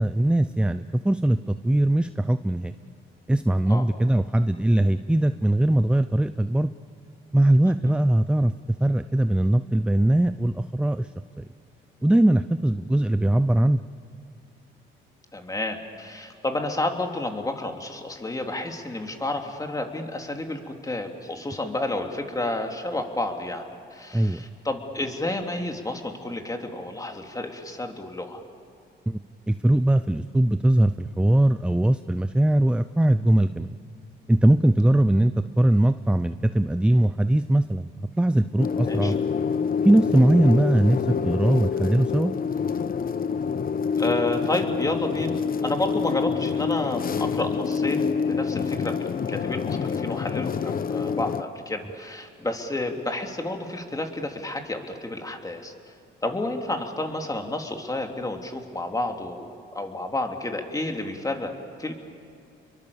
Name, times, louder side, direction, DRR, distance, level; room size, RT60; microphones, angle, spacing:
voice 1, 0.0-2.7 3.3-6.7 7.3-8.5 8.8-11.1 11.4-11.5 12.0-13.8 24.1-24.5 29.1-29.2 29.5-33.8 34.3-37.9 38.2-39.2 39.8-42.4, right 1 dB, 5° right, 12 dB, 0.6 m, -21 dB
voice 2, 15.3-28.4 38.8-39.1 40.2-40.3 44.0-55.7 56.2-61.9, left 2 dB, 15° left, 3 dB, 3.1 m, -30 dB
sound 1, 38.6-51.4, left 6 dB, 45° left, 1.0 m, -27 dB
29.5 x 23.0 x 7.1 m, 2.5 s
cardioid pair, 90°, 20 cm